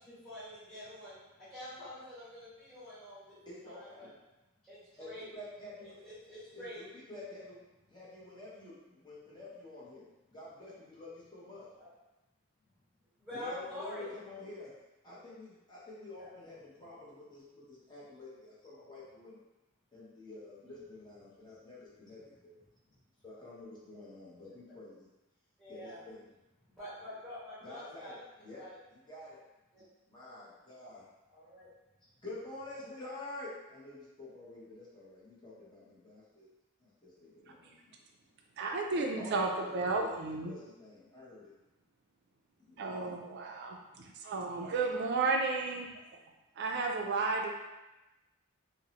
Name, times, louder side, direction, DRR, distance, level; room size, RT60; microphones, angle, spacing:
voice 1, 0.0-1.2 1.5-3.4 3.6-4.1 4.6-5.2 5.8-6.8 11.8-11.9 13.2-14.1 16.2-16.3 24.6-24.7 25.6-26.0 26.8-28.2 28.6-28.8 29.7-29.8 31.3-31.7, left 1 dB, ahead, -14 dB, 1.2 m, -46 dB
voice 2, 3.5-4.1 5.0-6.0 6.5-7.6 7.9-11.7 13.3-14.7 15.0-19.4 19.9-22.6 23.2-25.1 25.7-26.3 27.6-28.2 28.4-28.6 28.9-29.4 30.1-31.0 32.2-36.5 36.8-38.0 39.2-41.5 42.6-43.2, left 2 dB, 20° left, -8 dB, 0.8 m, -48 dB
voice 3, 38.6-40.5 42.8-45.9 46.6-47.5, right 3 dB, 50° right, 2 dB, 0.3 m, -33 dB
2.6 x 2.0 x 2.8 m, 1.0 s
head